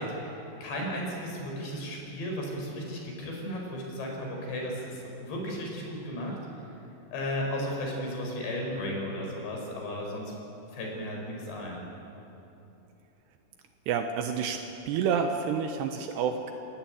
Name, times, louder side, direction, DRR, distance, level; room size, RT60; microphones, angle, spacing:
voice 1, 0.0-6.4 7.1-10.4 10.7-11.8, equal, 80° left, 0 dB, 7.6 m, -35 dB
voice 2, 13.9-14.6 14.9-16.5, right 7 dB, 80° right, 4 dB, 3.2 m, -28 dB
29.0 x 19.0 x 9.0 m, 3.0 s
omnidirectional pair, 5.0 m